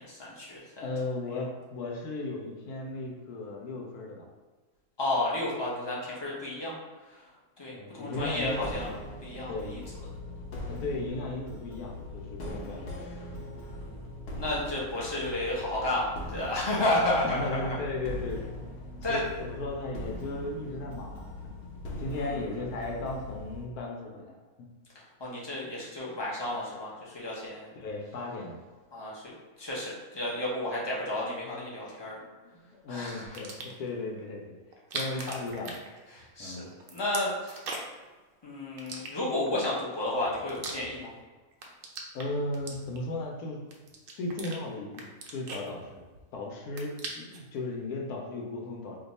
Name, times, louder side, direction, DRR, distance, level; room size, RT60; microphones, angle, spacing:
voice 1, 0.0-0.8 5.0-6.7 7.6-8.9 9.2-9.8 13.6-13.9 14.4-17.5 19.0-19.2 22.1-22.3 25.2-27.7 28.9-29.2 29.6-32.2 32.9-33.3 35.1-35.3 36.1-36.6 36.9-37.6 38.4-41.1, left 1 dB, 40° left, -6 dB, 0.4 m, -32 dB
voice 2, 0.8-4.3 7.7-8.6 9.5-9.8 10.7-12.9 13.3-13.5 17.2-18.5 19.1-21.6 22.0-24.7 27.7-28.6 32.4-34.6 34.9-35.8 36.4-36.7 42.1-43.6 44.2-46.0 46.3-49.0, left 2 dB, 85° left, 0 dB, 1.1 m, -36 dB
sound 1, 8.1-23.7, left 1 dB, 60° left, 0.8 m, -41 dB
sound 2, 33.2-33.9 34.7-36.4 36.7-38.1 38.8-39.6 40.1-41.2 41.5-43.2 43.7-44.6 44.9-46.3 46.6-47.5, right 3 dB, 80° right, 0.5 m, -40 dB
2.7 x 2.2 x 4.0 m, 1.3 s
omnidirectional pair, 1.5 m